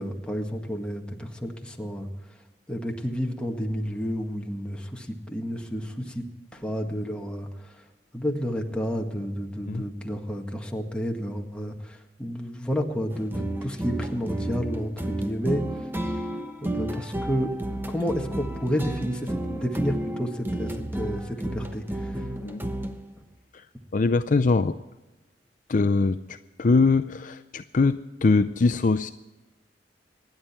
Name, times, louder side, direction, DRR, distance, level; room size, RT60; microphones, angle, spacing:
voice 1, 0.0-2.1 2.7-6.2 6.5-7.7 8.1-15.6 16.0-16.1 16.6-22.2, equal, 5° left, 1 dB, 1.8 m, -31 dB
sound 1, 13.1-23.1, right 1 dB, 10° right, 0.9 m, -32 dB
voice 2, 23.9-24.8 25.7-26.2 26.6-29.1, left 3 dB, 45° left, 10 dB, 0.5 m, -22 dB
25.5 x 10.5 x 4.4 m, 1.1 s
head